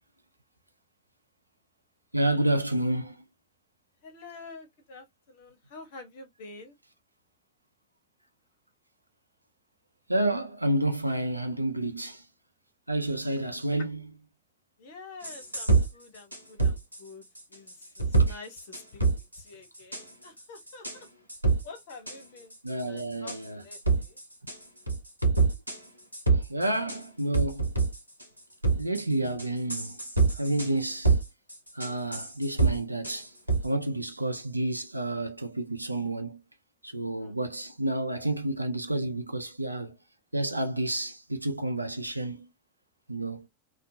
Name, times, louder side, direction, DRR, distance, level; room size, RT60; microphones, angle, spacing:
voice 1, 2.1-3.2 10.1-12.2 12.9-14.0 22.6-23.6 26.3-27.7 28.7-30.0 30.4-31.1 31.7-33.3 33.6-36.4 36.8-40.0 40.3-42.5 43.1-43.5, right 1 dB, 85° right, 0.4 m, -30 dB
voice 2, 4.0-6.8 14.8-19.0 19.3-21.1 21.6-22.6 22.8-24.2 36.9-37.4, left 4 dB, 50° left, 0.9 m, -48 dB
sound 1, 15.2-15.9 16.3-17.0 17.4-18.3 18.6-19.4 19.7-20.0 20.4-21.0 21.3-21.6 22.1-22.2 22.5-23.0 23.3-23.4 23.7-24.6 24.9-25.8 26.1-27.0 27.3-28.2 28.6-29.0 29.4-30.7 31.0-31.2 31.5-32.8 33.0-33.2 33.5-33.6, right 4 dB, 90° left, 0.5 m, -25 dB
2.4 x 2.1 x 2.5 m
figure-of-eight pair, 90°, 0 cm